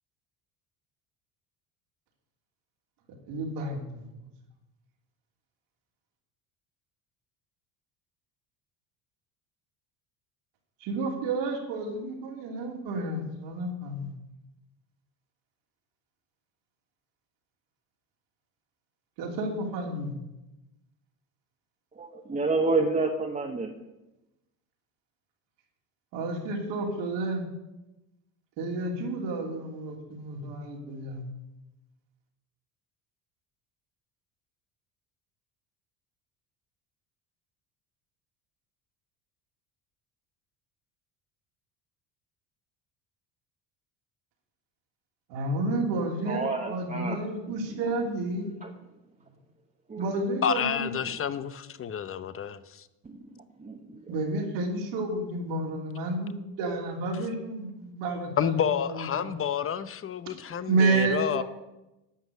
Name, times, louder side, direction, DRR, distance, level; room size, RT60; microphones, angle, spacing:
voice 1, 3.3-4.1 10.8-14.1 19.2-20.1 26.1-27.4 28.6-31.2 45.3-48.5 49.9-50.9 54.1-59.3 60.7-61.4, right 2 dB, 75° right, 0 dB, 3.1 m, -30 dB
voice 2, 21.9-23.7 46.3-47.2 47.7-47.8 48.6-48.7 49.9-50.1 53.0-53.2 53.6-54.0 61.3-61.4, right 3 dB, 20° right, 0 dB, 1.2 m, -29 dB
voice 3, 50.4-52.8 58.4-61.4, left 8 dB, 30° left, 14 dB, 0.8 m, -29 dB
11.0 x 6.1 x 8.4 m, 0.98 s
supercardioid pair, 100°, 43 cm